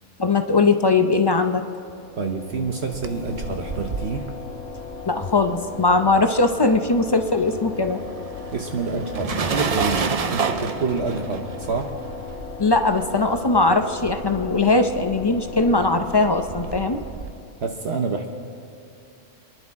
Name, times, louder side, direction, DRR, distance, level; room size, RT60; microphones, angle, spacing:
voice 1, 0.2-1.6 5.1-8.0 12.6-17.0, left 3 dB, 35° left, 6 dB, 0.4 m, -20 dB
sound 1, 1.8-17.7, left 5 dB, 90° left, 1.2 m, -37 dB
voice 2, 2.2-4.3 8.5-11.9 17.6-18.3, right 4 dB, 60° right, 3 dB, 1.1 m, -27 dB
sound 2, 2.7-6.3 6.6-17.3, right 5 dB, 40° right, 0.5 m, -31 dB
27.5 x 11.0 x 3.6 m, 2.4 s
omnidirectional pair, 1.3 m